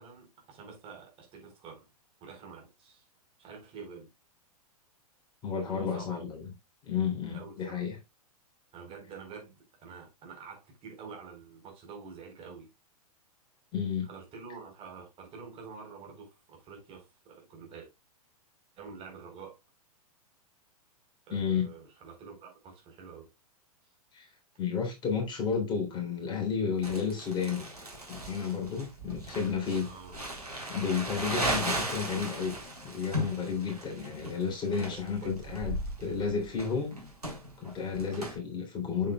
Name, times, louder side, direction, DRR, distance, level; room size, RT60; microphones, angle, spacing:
voice 1, 0.0-1.9 2.2-3.1 3.4-4.1 5.7-6.2 7.3-7.8 8.7-12.7 14.0-17.9 18.8-19.6 21.3-23.3 29.8-30.2 34.9-35.3 38.1-38.3, right 5 dB, 30° right, 4.1 m, -47 dB
voice 2, 5.4-6.4 6.8-8.0 13.7-14.1 21.3-21.7 24.1-24.3 24.6-27.6 28.1-29.9 30.7-32.6 32.8-37.0 37.6-39.1, left 6 dB, 25° left, 3.5 m, -32 dB
Crumpling crinkling, 26.8-38.3, right 1 dB, 90° right, 3.9 m, -36 dB
8.6 x 7.5 x 2.3 m
figure-of-eight pair, 105°, 19 cm